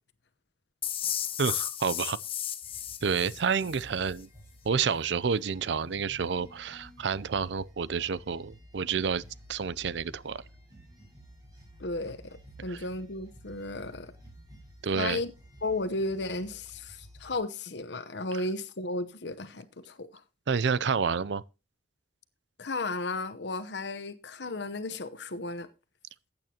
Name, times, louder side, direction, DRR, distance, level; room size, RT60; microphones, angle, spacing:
sound 1, 0.8-3.8, left 10 dB, 30° left, 0.7 m, -34 dB
voice 1, 1.4-2.2 3.0-4.3 4.6-9.2 9.5-10.4 12.7-12.8 14.8-15.2 20.5-21.4, right 6 dB, 70° right, 0.5 m, -29 dB
sound 2, 2.6-17.4, equal, 20° right, 6.1 m, -52 dB
voice 2, 11.8-14.1 14.9-15.3 15.6-20.1 22.6-25.7, left 2 dB, 65° left, 0.9 m, -34 dB
15.0 x 8.9 x 2.9 m
head